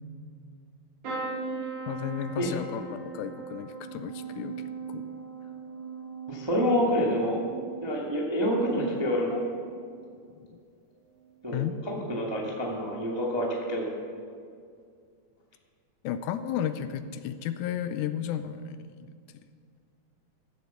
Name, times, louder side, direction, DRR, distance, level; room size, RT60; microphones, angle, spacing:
sound 1, 1.0-8.9 9.3-9.9 11.1-11.3 11.6-11.7, right 4 dB, 60° right, 3.7 m, -39 dB
voice 1, 1.9-5.2 10.5-10.6 11.5-11.8 16.0-19.2, left 9 dB, 80° left, 11 dB, 1.9 m, -34 dB
voice 2, 6.3-7.4 7.8-9.4 11.4-13.9, equal, 15° right, -3 dB, 1.1 m, -27 dB
15.5 x 8.2 x 7.0 m, 2.2 s
omnidirectional pair, 3.9 m